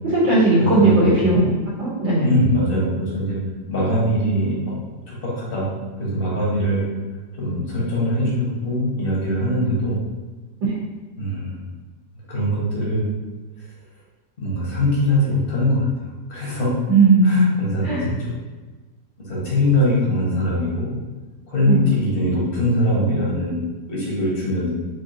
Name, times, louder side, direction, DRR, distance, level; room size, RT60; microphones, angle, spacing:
voice 1, 0.0-1.5 1.8-2.3 10.7-10.8 16.9-17.5 17.8-18.1 21.7-21.9, right 2 dB, 80° right, -8 dB, 1.9 m, -17 dB
voice 2, 0.6-1.1 2.2-3.4 3.7-5.7 6.0-6.9 7.4-10.0 11.2-11.5 12.3-13.1 14.4-15.9 16.3-16.7 17.2-18.3 19.2-21.0 21.5-24.7, left 1 dB, 40° left, -6 dB, 0.9 m, -22 dB
4.4 x 2.6 x 2.7 m, 1.3 s
omnidirectional pair, 2.0 m